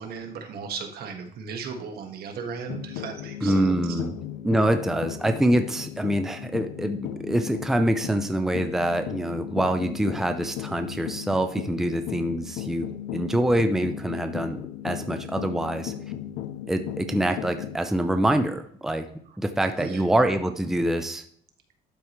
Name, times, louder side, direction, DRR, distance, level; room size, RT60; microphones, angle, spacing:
voice 1, 0.0-3.9 19.8-20.1, right 5 dB, 65° right, 5 dB, 1.5 m, -36 dB
sound 1, 2.7-17.8, left 11 dB, 90° left, 0.5 m, -36 dB
voice 2, 3.4-4.1 4.4-12.9 13.1-14.6 14.8-15.9 16.7-19.1 19.4-21.2, right 1 dB, ahead, 7 dB, 0.6 m, -25 dB
12.0 x 4.8 x 3.1 m, 0.62 s
cardioid pair, 110°, 17 cm